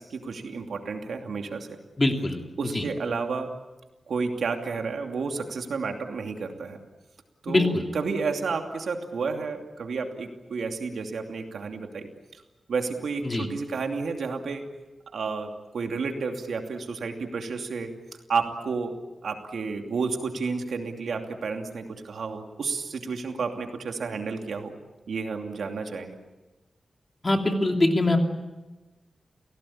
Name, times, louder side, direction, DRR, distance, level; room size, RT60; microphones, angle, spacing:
voice 1, 0.0-1.7 2.6-3.5 4.1-6.8 7.4-12.1 12.7-14.7 15.1-17.9 18.3-19.0 19.2-24.7 25.1-26.2, right 4 dB, 80° right, 4 dB, 2.7 m, -31 dB
voice 2, 2.0-2.4 2.7-2.8 7.5-7.8 13.2-13.5 27.2-28.2, left 2 dB, 25° left, 3 dB, 2.8 m, -23 dB
29.0 x 17.5 x 8.7 m, 1.1 s
wide cardioid pair, 135°, 0 cm